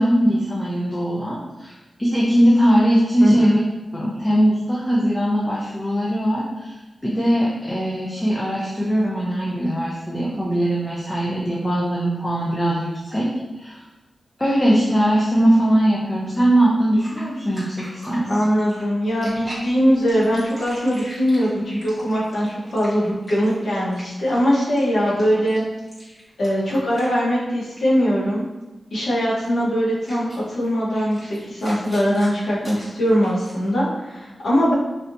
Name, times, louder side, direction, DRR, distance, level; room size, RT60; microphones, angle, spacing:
voice 1, 0.0-1.7 2.0-3.6 3.9-6.8 7.0-13.3 13.6-13.8 14.4-18.3, equal, 15° left, -5 dB, 0.5 m, -20 dB
voice 2, 3.2-3.6 18.3-25.6 26.4-28.4 28.9-34.7, equal, 70° left, -7 dB, 1.1 m, -21 dB
sound 1, 17.0-27.5 27.8-28.0 29.5-29.6 30.0-33.7, equal, 5° right, 1.2 m, -42 dB
3.3 x 2.7 x 2.6 m, 1.1 s
wide cardioid pair, 130°, 0 cm